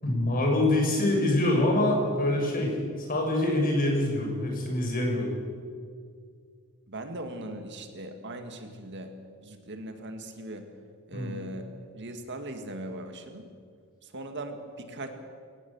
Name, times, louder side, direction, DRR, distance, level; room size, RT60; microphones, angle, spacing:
voice 1, 0.0-2.7 3.0-5.3 11.1-11.3, left 1 dB, 40° left, 0 dB, 6.5 m, -25 dB
voice 2, 6.9-9.1 9.4-10.7 11.1-13.5 14.0-15.1, right 1 dB, 55° right, 6 dB, 2.1 m, -39 dB
23.0 x 18.5 x 7.2 m, 2.1 s
head